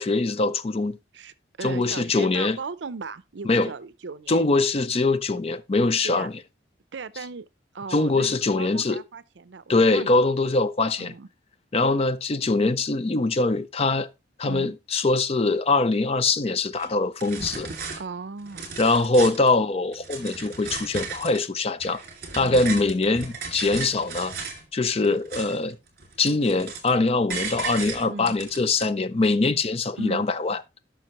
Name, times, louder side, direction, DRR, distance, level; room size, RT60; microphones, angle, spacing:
voice 1, 0.0-1.0 1.6-2.6 3.4-3.7 4.3-6.4 7.9-9.0 9.7-11.1 11.7-14.1 14.4-17.7 18.8-22.0 22.3-24.4 24.7-25.8 26.2-30.6, left 3 dB, 35° left, 0.5 m, -23 dB
voice 2, 1.1-4.4 6.0-6.3 6.9-7.4 7.7-10.3 11.0-11.3 14.4-14.7 18.0-18.7 22.4-22.8 28.1-28.4 30.0-30.2, right 4 dB, 75° right, 0.6 m, -37 dB
sound 1, 16.7-16.9 17.2-18.0 18.4-19.5 19.9-21.4 21.8-24.6 25.0-25.7 26.0-27.0 27.3-28.8, right 5 dB, 50° right, 2.4 m, -35 dB
12.0 x 5.9 x 3.0 m
head